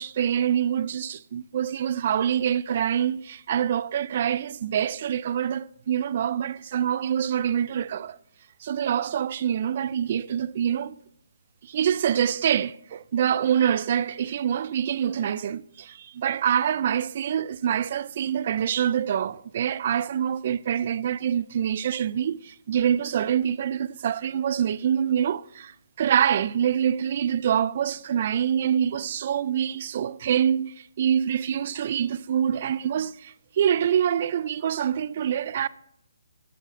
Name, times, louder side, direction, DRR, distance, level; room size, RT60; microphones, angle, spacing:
voice 1, 0.0-8.2 8.6-10.9 11.6-35.7, right 9 dB, 40° right, 0.3 m, -25 dB
11.5 x 7.5 x 2.5 m
hypercardioid pair, 165°, 0 cm